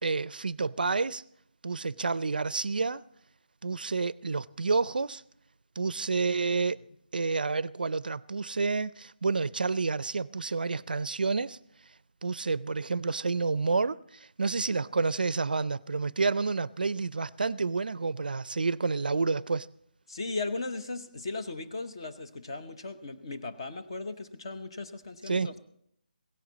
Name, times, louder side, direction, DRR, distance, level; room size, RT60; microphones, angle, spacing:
voice 1, 0.0-1.2 1.6-3.0 3.6-5.2 5.8-6.8 7.1-11.6 12.2-19.7 25.3-25.5, right 4 dB, 70° right, 0.5 m, -29 dB
voice 2, 20.1-25.6, left 3 dB, 30° left, 0.9 m, -37 dB
16.5 x 14.5 x 4.0 m
hypercardioid pair, 175°, 5 cm